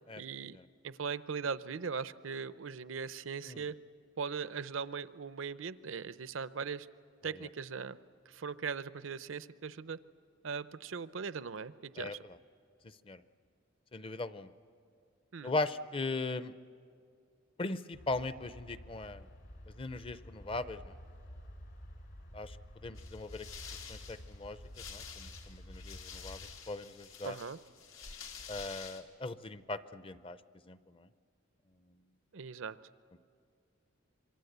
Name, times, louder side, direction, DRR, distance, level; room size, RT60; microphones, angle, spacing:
voice 1, 0.2-0.6 0.8-3.7 4.2-6.9 7.2-8.0 8.3-10.0 10.4-12.2 15.3-15.5 27.2-27.6 32.3-32.8, right 5 dB, 75° right, 15 dB, 0.6 m, -39 dB
voice 2, 13.9-14.5 15.4-16.5 17.6-19.2 19.8-20.9 22.3-22.6 22.8-23.5 23.9-24.6 24.9-26.4 26.7-27.4 28.5-30.4 30.7-31.1, left 2 dB, 30° left, 14 dB, 0.6 m, -39 dB
sound 1, 17.9-26.6, equal, 60° left, 3.1 m, -51 dB
sound 2, 23.0-29.0, left 6 dB, 90° left, 2.2 m, -49 dB
26.5 x 23.5 x 8.1 m, 2.3 s
head